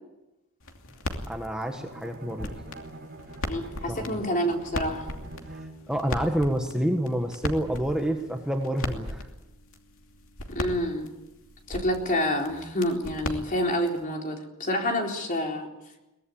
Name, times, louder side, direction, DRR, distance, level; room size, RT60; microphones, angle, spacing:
sound 1, 0.6-14.0, left 1 dB, 65° left, 2.8 m, -38 dB
voice 1, 1.3-2.6 3.9-4.3 5.5-9.3, equal, 5° right, 3 dB, 1.5 m, -28 dB
Bowed string instrument, 1.7-6.0, right 2 dB, 45° right, 5.2 m, -45 dB
voice 2, 3.4-5.1 10.5-11.1 11.7-15.7, equal, 35° left, 1 dB, 4.0 m, -28 dB
23.0 x 19.0 x 8.8 m, 0.98 s
head